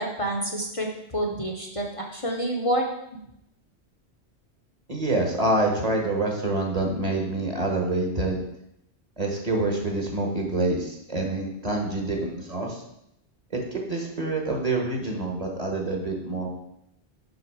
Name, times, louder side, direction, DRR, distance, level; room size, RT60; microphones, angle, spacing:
voice 1, 0.0-2.9, right 1 dB, 35° left, 1 dB, 0.8 m, -28 dB
voice 2, 4.9-8.4 9.2-12.8 13.7-16.5, right 2 dB, 35° right, 1 dB, 1.3 m, -26 dB
6.4 x 5.8 x 4.7 m, 0.80 s
omnidirectional pair, 1.1 m